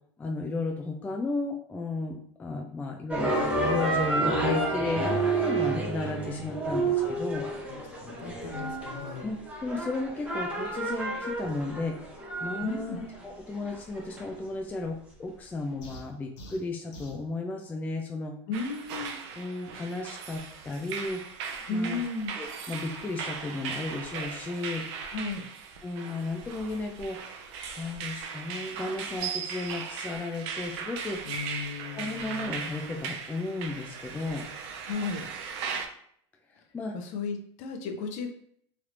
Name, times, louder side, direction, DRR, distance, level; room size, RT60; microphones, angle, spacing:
voice 1, 0.2-3.3 3.6-7.5 9.2-12.0 12.4-18.4 19.4-21.2 21.7-22.0 22.4-24.9 25.8-27.2 27.8-31.2 32.0-34.5 36.7-37.0, left 3 dB, 10° left, 2 dB, 0.3 m, -34 dB
sound 1, 3.1-14.3, right 2 dB, 10° right, 0.8 m, -30 dB
voice 2, 7.7-9.3 12.6-13.0 18.5-19.2 21.7-22.3 25.1-25.5 31.2-32.6 34.9-35.3 36.9-38.3, left 4 dB, 50° left, 4 dB, 0.6 m, -35 dB
sound 2, 15.8-17.3, equal, 75° left, 0.9 m, -46 dB
sound 3, 18.5-35.9, right 6 dB, 65° right, 0.6 m, -38 dB
3.3 x 2.9 x 2.5 m, 0.65 s
supercardioid pair, 115°, 15 cm